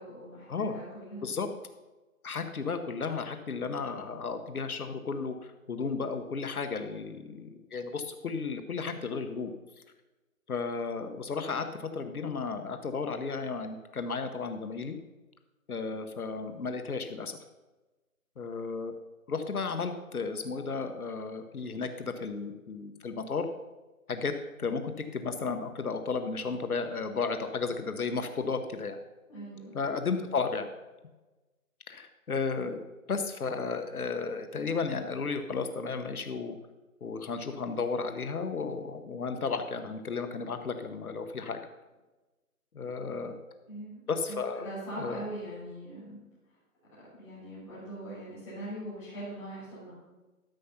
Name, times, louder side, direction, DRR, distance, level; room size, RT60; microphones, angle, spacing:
voice 1, 0.0-1.3 29.3-29.7 43.7-44.0 44.3-46.2 47.2-49.9, right 1 dB, 5° left, -13 dB, 3.1 m, -41 dB
voice 2, 2.2-9.5 10.5-15.0 15.7-17.4 18.4-18.9 19.3-23.5 24.1-24.3 24.6-29.0 29.7-30.7 31.9-36.6 37.0-41.6 42.7-43.3 44.1-44.7 45.0-45.2, left 4 dB, 80° left, 7 dB, 1.1 m, -33 dB
13.0 x 5.7 x 5.8 m, 1.1 s
hypercardioid pair, 175°, 44 cm